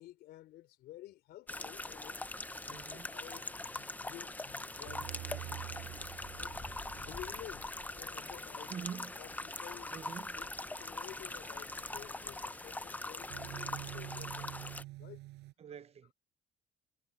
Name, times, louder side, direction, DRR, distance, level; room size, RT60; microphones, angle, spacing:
voice 1, 0.0-2.2 2.6-5.4 6.3-6.6 6.9-8.8 9.1-10.0 10.4-10.5 10.8-14.6 15.0-15.3, left 15 dB, 75° left, 4.1 m, -52 dB
sound 1, 1.5-14.8, left 2 dB, 10° left, 0.7 m, -42 dB
voice 2, 2.7-3.1 8.7-9.1 9.9-10.4 15.6-16.1, right 7 dB, 40° right, 0.7 m, -45 dB
sound 2, 3.1-15.5, right 19 dB, 90° right, 5.3 m, -50 dB
cardioid pair, 110°, 17 cm